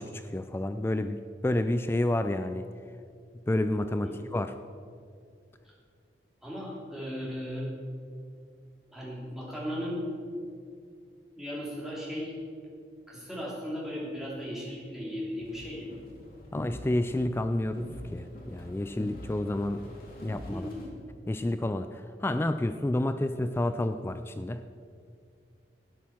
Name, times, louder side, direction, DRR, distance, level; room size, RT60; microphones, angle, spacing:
voice 1, 0.0-2.7 3.5-4.5 16.5-19.9 20.2-20.7 21.3-24.6, left 1 dB, 15° left, 10 dB, 0.3 m, -30 dB
voice 2, 6.4-7.7 8.9-10.0 11.4-12.3 13.1-15.9 20.5-20.9, equal, ahead, -6 dB, 3.1 m, -36 dB
sound 1, 15.4-20.9, left 1 dB, 55° left, 2.5 m, -44 dB
12.5 x 9.1 x 6.0 m, 2.3 s
head